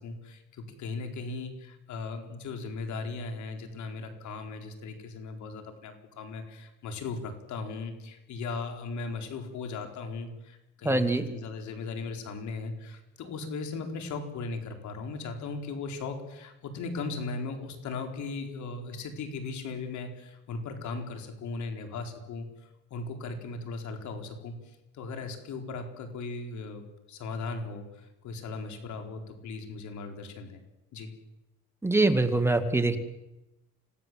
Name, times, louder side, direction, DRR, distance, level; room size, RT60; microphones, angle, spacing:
voice 1, 0.0-30.6 30.9-31.1, left 3 dB, 65° left, 5 dB, 4.4 m, -38 dB
voice 2, 10.8-11.3 31.8-33.0, right 2 dB, 10° right, 7 dB, 2.2 m, -24 dB
26.5 x 17.5 x 7.7 m, 0.97 s
cardioid pair, 95°, 31 cm